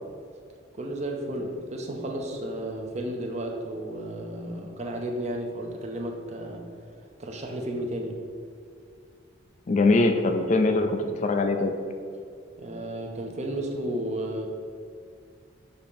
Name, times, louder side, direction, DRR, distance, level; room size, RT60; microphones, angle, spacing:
voice 1, 0.7-6.6 7.2-8.2 12.6-14.5, right 1 dB, 35° right, 2 dB, 0.6 m, -33 dB
voice 2, 9.7-11.7, left 2 dB, 35° left, 6 dB, 0.3 m, -22 dB
6.6 x 2.9 x 5.2 m, 2.3 s
head